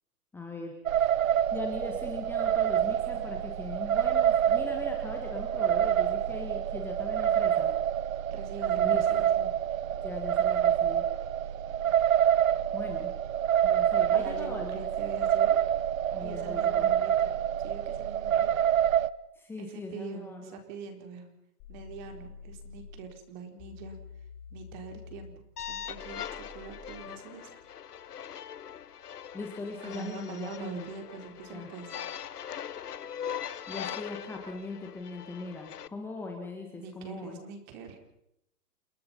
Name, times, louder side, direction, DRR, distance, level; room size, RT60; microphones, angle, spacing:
voice 1, 0.3-0.7 1.5-7.7 8.8-9.0 10.0-11.0 12.7-13.1 13.6-14.9 16.1-16.9 19.3-20.5 29.3-30.9 31.5-31.7 33.7-37.4, left 3 dB, 5° left, 1 dB, 1.9 m, -40 dB
sound 1, 0.9-19.1, right 10 dB, 60° right, 1.0 m, -27 dB
voice 2, 8.3-9.5 14.1-15.6 16.2-17.3 17.6-18.6 19.6-21.3 21.7-24.0 24.5-26.2 26.5-27.6 29.8-32.0 36.7-38.0, right 5 dB, 30° right, 6 dB, 4.3 m, -43 dB
sound 2, 21.6-23.1 23.6-27.1, left 6 dB, 25° left, 3.0 m, -48 dB
sound 3, 25.6-35.9, left 9 dB, 80° left, 1.3 m, -41 dB
29.5 x 19.5 x 5.6 m, 0.80 s
hypercardioid pair, 160°, 46 cm